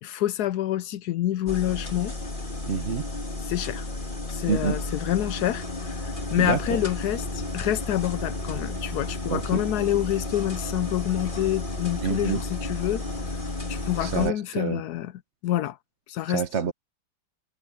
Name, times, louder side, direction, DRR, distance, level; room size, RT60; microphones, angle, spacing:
voice 1, 0.0-2.1 3.4-3.9 4.3-13.0 13.7-15.1 15.4-15.8 16.1-16.4, left 12 dB, 85° left, 0.8 m, -27 dB
sound 1, 1.5-14.3, left 2 dB, 25° left, 2.5 m, -32 dB
voice 2, 2.7-3.0 4.5-4.8 6.4-6.8 9.3-9.6 12.0-12.4 14.0-14.8 16.3-16.7, right 6 dB, 45° right, 0.9 m, -27 dB
omnidirectional pair, 2.3 m